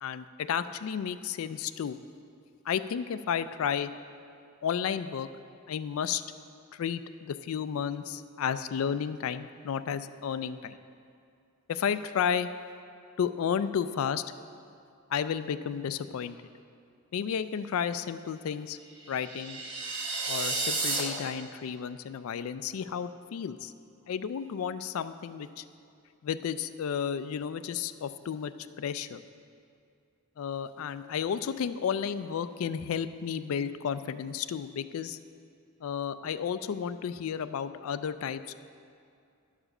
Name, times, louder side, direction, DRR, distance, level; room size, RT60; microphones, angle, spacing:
voice 1, 0.0-2.0 2.7-3.9 4.6-5.3 5.7-6.2 6.7-10.8 11.7-12.5 13.2-14.2 15.1-16.4 17.1-18.8 19.1-19.6 20.3-23.7 24.1-25.6 26.2-28.5 28.8-29.2 30.4-35.2 35.8-38.6, left 7 dB, 70° left, 12 dB, 0.3 m, -32 dB
sound 1, 19.0-21.0, right 3 dB, 55° right, 1.7 m, -32 dB
11.0 x 4.9 x 6.4 m, 2.4 s
head